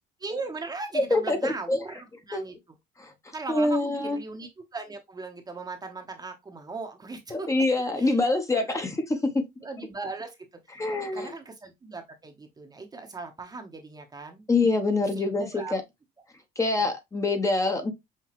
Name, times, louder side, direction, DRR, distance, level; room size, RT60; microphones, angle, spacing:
voice 1, 0.2-2.6 3.3-7.5 8.0-8.2 8.5-8.9 9.6-10.4 10.9-14.5 15.1-15.7, right 3 dB, 25° right, 0.9 m, -38 dB
voice 2, 0.9-1.8 2.3-2.4 3.0-3.1 3.5-4.2 7.3-9.3 10.8-11.3 14.5-15.8 16.6-17.9, left 2 dB, 20° left, 0.8 m, -25 dB
5.8 x 2.3 x 2.9 m
cardioid pair, 110°, 17 cm